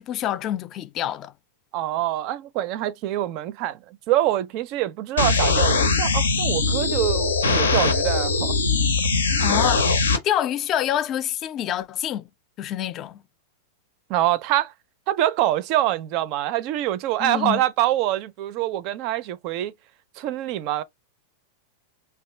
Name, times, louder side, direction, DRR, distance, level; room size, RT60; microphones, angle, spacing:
voice 1, 0.0-1.3 9.4-12.2 12.6-13.2 17.2-17.6, left 11 dB, 35° left, 0.4 m, -27 dB
voice 2, 1.7-8.6 14.1-14.7 15.1-19.7 20.2-20.8, right 14 dB, 50° right, 0.4 m, -25 dB
sound 1, 5.2-10.2, left 4 dB, 80° left, 0.6 m, -21 dB
2.7 x 2.3 x 3.2 m
figure-of-eight pair, 95°, 0 cm